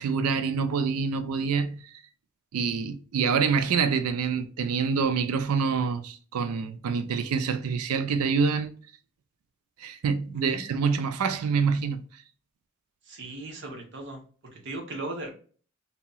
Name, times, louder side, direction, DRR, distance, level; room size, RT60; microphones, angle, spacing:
voice 1, 0.0-1.8 2.5-8.7 9.8-12.0, right 5 dB, 90° right, 0.4 m, -26 dB
voice 2, 13.1-14.2 14.5-15.3, right 2 dB, 55° right, 0.8 m, -37 dB
2.9 x 2.8 x 2.2 m
head